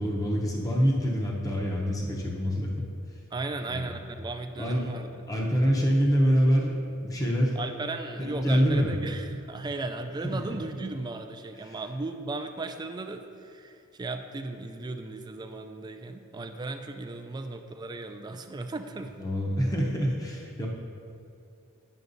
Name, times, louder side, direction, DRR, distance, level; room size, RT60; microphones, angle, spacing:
voice 1, 0.0-2.8 3.7-3.9 4.6-4.9 5.3-7.6 8.3-8.9 10.2-10.6 19.2-20.7, equal, 15° left, -2 dB, 0.7 m, -25 dB
voice 2, 3.3-5.2 7.6-19.1, right 2 dB, 20° right, 6 dB, 0.3 m, -36 dB
9.3 x 5.8 x 2.6 m, 2.4 s
head